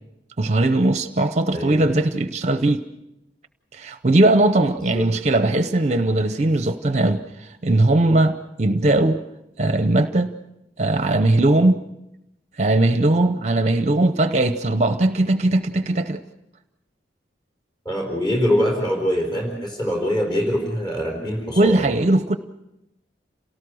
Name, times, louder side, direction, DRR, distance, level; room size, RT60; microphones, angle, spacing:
voice 1, 0.4-2.8 3.7-9.2 9.6-10.3 10.8-11.8 12.6-16.2 21.6-22.4, right 2 dB, 40° right, 9 dB, 0.7 m, -19 dB
voice 2, 1.5-1.9 4.9-5.1 17.8-21.9, equal, 25° left, 1 dB, 4.2 m, -23 dB
28.5 x 18.5 x 6.3 m, 0.89 s
head